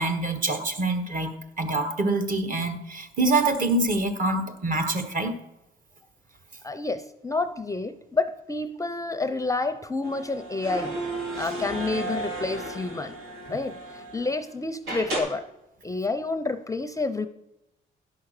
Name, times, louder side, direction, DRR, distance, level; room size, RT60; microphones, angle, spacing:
voice 1, 0.0-5.3 13.5-13.6, right 2 dB, 45° right, 8 dB, 1.4 m, -25 dB
voice 2, 6.6-11.0 11.4-13.1 13.5-15.4 15.8-17.3, left 3 dB, 15° left, 11 dB, 0.5 m, -29 dB
sound 1, 10.0-14.4 14.9-15.2, right 2 dB, 90° right, 2.2 m, -34 dB
10.5 x 5.8 x 6.5 m, 0.88 s
cardioid pair, 90°, 20 cm